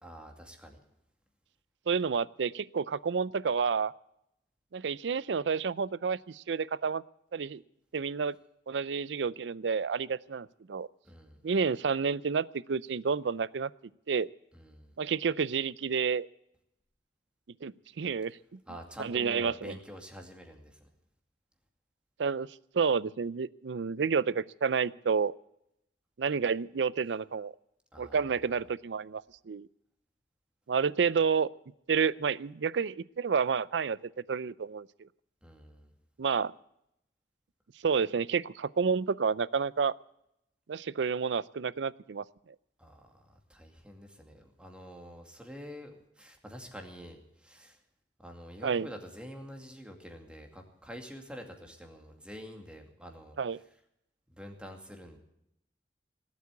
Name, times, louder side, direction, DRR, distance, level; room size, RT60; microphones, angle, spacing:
voice 1, 0.0-0.8 11.0-11.4 14.5-14.9 18.7-20.8 27.9-28.3 35.4-35.9 42.8-47.8 48.2-53.3 54.4-55.2, equal, 5° right, 3 dB, 2.4 m, -47 dB
voice 2, 1.9-3.9 4.7-7.0 7.3-7.6 7.9-8.3 8.7-10.9 11.4-13.7 14.1-14.3 15.0-16.3 17.6-18.6 19.0-19.8 22.2-22.5 22.7-25.3 26.2-27.5 28.0-29.7 30.7-31.5 31.9-34.0 34.3-34.9 36.2-36.5 37.8-39.9 40.7-42.2 48.6-48.9 53.4-53.6, right 5 dB, 80° right, 20 dB, 0.5 m, -30 dB
19.0 x 8.5 x 8.3 m, 0.80 s
head